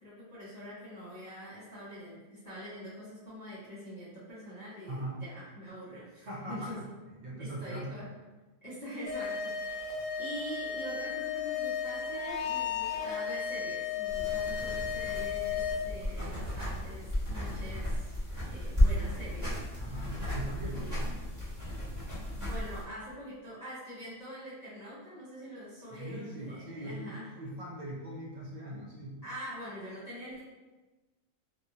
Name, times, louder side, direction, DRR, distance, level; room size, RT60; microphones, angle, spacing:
voice 1, 0.0-6.8 7.4-8.1 8.6-18.1 18.4-19.6 20.6-21.0 22.4-27.3 29.2-30.4, equal, 30° left, -12 dB, 1.2 m, -44 dB
voice 2, 4.9-5.2 6.2-6.8 7.2-8.0 19.8-21.3 25.9-29.2, right 1 dB, 85° right, -4 dB, 0.4 m, -41 dB
sound 1, 9.1-15.7, left 7 dB, 70° left, 0.9 m, -34 dB
sound 2, 14.1-22.8, left 1 dB, 15° right, 1.1 m, -33 dB
2.7 x 2.5 x 2.7 m, 1.2 s
omnidirectional pair, 1.5 m